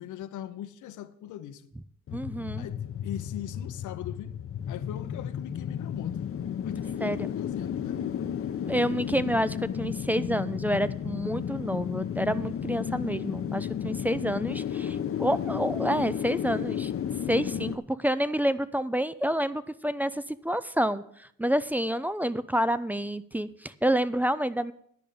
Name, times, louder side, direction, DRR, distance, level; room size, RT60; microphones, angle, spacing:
voice 1, 0.0-1.7 2.6-4.3 4.7-6.2 6.6-8.1, left 11 dB, 80° left, 0.8 m, -40 dB
sound 1, 2.1-17.8, left 9 dB, 50° left, 0.7 m, -33 dB
voice 2, 2.1-2.7 7.0-7.3 8.7-16.9 17.3-24.7, equal, 5° right, 0.4 m, -28 dB
10.5 x 5.2 x 8.5 m
cardioid pair, 90°, 30 cm